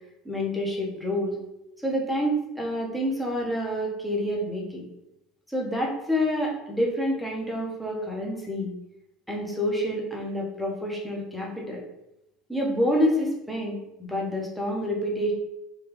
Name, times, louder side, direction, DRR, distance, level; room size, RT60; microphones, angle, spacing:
voice 1, 0.2-1.4 1.8-4.9 5.5-8.7 9.3-11.8 12.5-15.3, equal, ahead, -3 dB, 0.6 m, -28 dB
3.4 x 2.3 x 2.9 m, 0.86 s
cardioid pair, 145°, 0 cm